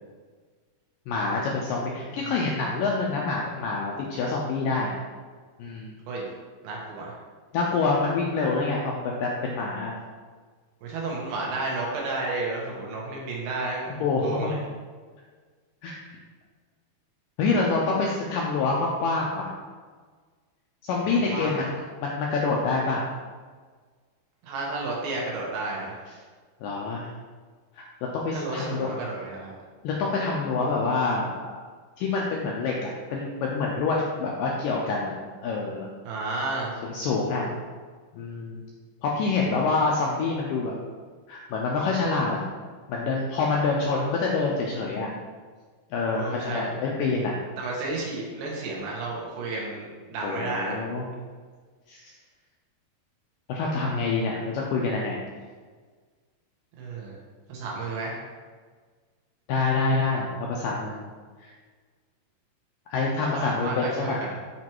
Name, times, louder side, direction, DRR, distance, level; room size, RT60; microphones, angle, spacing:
voice 1, 1.1-4.9 5.6-5.9 7.5-9.9 14.0-14.5 15.8-16.2 17.4-19.5 20.8-21.7 22.0-23.1 26.6-27.1 27.8-27.9 28.1-28.9 29.8-31.5 32.0-35.1 35.4-35.9 36.8-37.5 38.1-38.6 39.0-40.8 41.3-42.4 42.9-45.1 45.9-47.4 50.2-51.0 51.9-52.1 53.5-55.2 59.5-61.0 61.4-61.5 62.9-64.2, left 3 dB, 90° left, -2 dB, 1.9 m, -26 dB
voice 2, 6.6-7.2 10.8-14.6 21.0-21.7 24.4-26.0 28.3-29.5 36.0-36.8 46.1-46.7 47.6-50.8 56.8-57.1 57.5-58.2 63.2-64.4, right 3 dB, 75° right, -3 dB, 3.2 m, -32 dB
8.5 x 3.1 x 4.5 m, 1.5 s
omnidirectional pair, 4.6 m